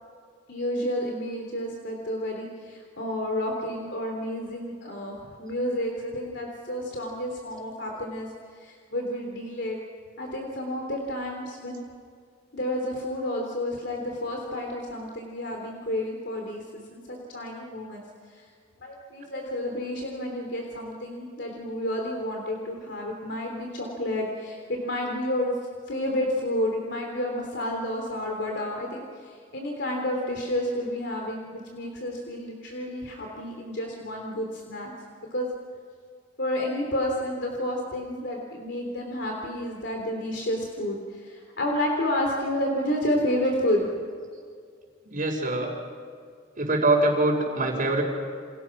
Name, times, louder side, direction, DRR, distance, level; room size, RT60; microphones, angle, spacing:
voice 1, 0.5-8.3 8.6-9.8 10.2-11.8 12.5-16.6 16.9-18.0 18.3-18.5 18.8-25.5 25.9-34.9 35.3-35.5 36.4-44.0, left 1 dB, 65° left, 1 dB, 3.4 m, -30 dB
voice 2, 45.0-45.7 46.6-48.0, right 2 dB, 45° right, -6 dB, 4.8 m, -23 dB
29.5 x 27.5 x 6.1 m, 2.1 s
head